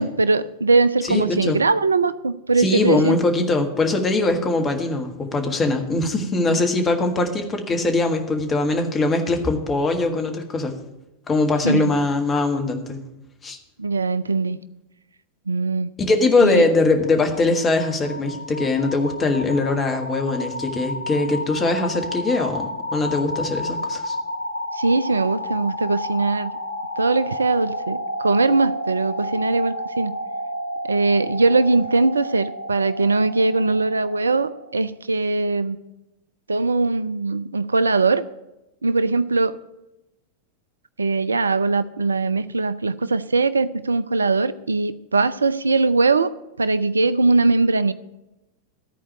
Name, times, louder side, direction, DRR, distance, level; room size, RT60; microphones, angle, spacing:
voice 1, 0.0-3.2 11.6-11.9 13.8-14.6 15.5-15.9 16.4-16.7 24.7-26.5 27.0-30.1 30.9-35.8 36.5-38.2 38.8-39.6 41.0-46.3 46.6-47.9, right 3 dB, 75° right, 16 dB, 0.4 m, -21 dB
voice 2, 1.1-1.6 2.6-10.7 11.3-13.0 13.4-13.6 16.0-24.2, left 2 dB, 20° left, 4 dB, 1.6 m, -21 dB
sound 1, 16.9-34.8, left 1 dB, 75° left, 0.9 m, -31 dB
13.5 x 4.6 x 8.7 m, 0.96 s
figure-of-eight pair, 90°, 0 cm